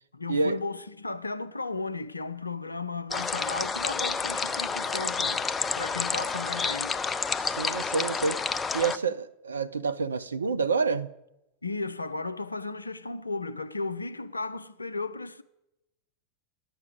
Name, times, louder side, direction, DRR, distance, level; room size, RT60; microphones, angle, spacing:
voice 1, 0.1-5.4 5.7-7.0 11.6-15.4, left 3 dB, 80° left, 0.5 m, -35 dB
sound 1, 3.1-9.0, left 5 dB, 15° left, 0.5 m, -29 dB
voice 2, 7.4-11.1, right 4 dB, 75° right, 0.4 m, -28 dB
10.5 x 6.6 x 8.0 m
figure-of-eight pair, 90°, 0 cm